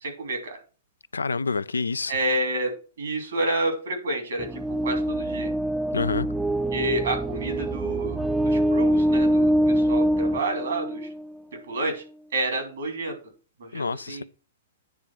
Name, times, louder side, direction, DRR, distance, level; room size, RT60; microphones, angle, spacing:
voice 1, 0.0-0.6 2.1-5.5 6.7-11.1 11.7-12.0 12.3-13.2 13.6-14.2, right 2 dB, 70° right, 2.9 m, -29 dB
voice 2, 1.1-2.2 5.9-6.3 13.7-14.2, left 4 dB, 85° left, 0.4 m, -27 dB
sound 1, 4.4-11.3, right 1 dB, 5° right, 0.4 m, -24 dB
9.2 x 3.7 x 5.9 m
hypercardioid pair, 115°, 0 cm